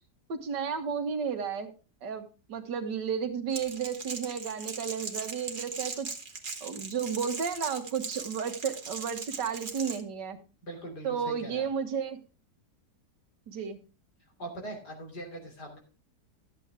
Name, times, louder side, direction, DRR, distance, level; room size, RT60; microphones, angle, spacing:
voice 1, 0.3-1.7 2.0-6.1 6.6-10.4 11.0-12.2 13.5-13.8, right 7 dB, 90° right, 7 dB, 2.0 m, -33 dB
Crackle, 3.5-10.0, right 4 dB, 35° right, 1.3 m, -39 dB
voice 2, 10.6-11.7 14.4-15.8, right 1 dB, 70° left, 2 dB, 3.6 m, -41 dB
13.0 x 8.4 x 3.5 m, 0.33 s
omnidirectional pair, 1.8 m